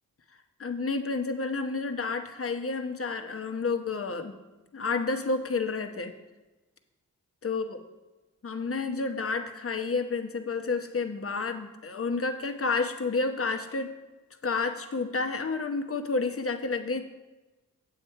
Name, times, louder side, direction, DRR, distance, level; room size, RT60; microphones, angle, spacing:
voice 1, 0.6-4.4 4.7-6.1 7.4-7.8 8.4-13.9 14.4-17.0, left 4 dB, 40° left, 6 dB, 1.0 m, -30 dB
8.5 x 7.6 x 4.6 m, 1.1 s
cardioid pair, 75°, 34 cm